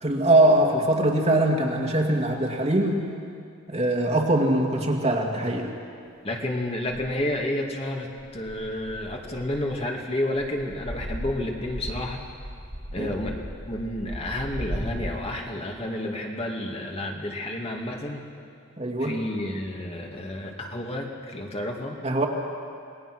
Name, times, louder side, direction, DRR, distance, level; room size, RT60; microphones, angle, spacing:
voice 1, 0.0-3.1 3.7-5.7 13.0-13.1 18.8-19.1 22.0-22.3, right 1 dB, 30° right, 1 dB, 2.1 m, -22 dB
voice 2, 6.2-12.2 12.9-18.2 19.0-22.0, left 1 dB, 30° left, 0 dB, 2.2 m, -30 dB
sound 1, 6.9-7.3 8.2-10.0 10.3-15.2, equal, 85° right, 3.6 m, -37 dB
28.0 x 20.0 x 6.2 m, 2.4 s
head